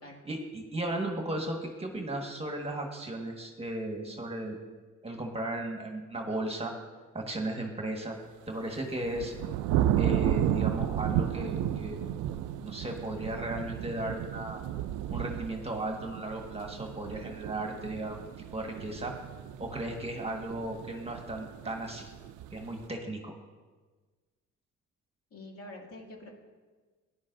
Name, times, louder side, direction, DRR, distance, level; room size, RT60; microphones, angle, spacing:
voice 1, 0.2-4.6 5.0-6.7 7.1-8.1 8.5-9.3 9.9-12.0 12.6-14.6 15.1-19.1 19.6-22.1 22.5-23.3, right 1 dB, 20° right, 2 dB, 1.5 m, -35 dB
sound 1, 8.6-22.8, right 11 dB, 85° right, 0.5 m, -33 dB
voice 2, 25.3-26.3, left 1 dB, 50° left, -1 dB, 2.3 m, -46 dB
16.5 x 10.5 x 2.6 m, 1.4 s
cardioid pair, 90°, 30 cm